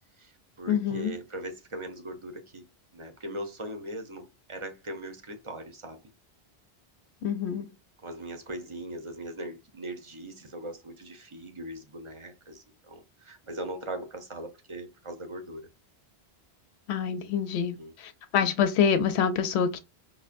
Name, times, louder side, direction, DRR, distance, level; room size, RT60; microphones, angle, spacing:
voice 1, 0.2-2.6 2.9-6.0 8.0-15.7 17.5-17.9, right 1 dB, 35° right, 0.6 m, -40 dB
voice 2, 0.7-1.1 7.2-7.7 16.9-19.8, left 7 dB, 90° left, 0.9 m, -26 dB
5.3 x 2.1 x 2.4 m
omnidirectional pair, 1.1 m